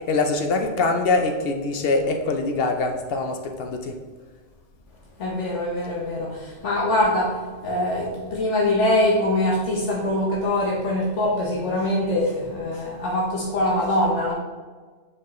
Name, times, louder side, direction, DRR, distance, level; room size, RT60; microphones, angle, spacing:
voice 1, 0.1-3.9, left 3 dB, 60° left, 5 dB, 0.8 m, -23 dB
voice 2, 5.2-7.4 7.6-14.3, left 1 dB, 80° left, -3 dB, 1.3 m, -23 dB
8.4 x 4.5 x 3.1 m, 1.4 s
omnidirectional pair, 1.2 m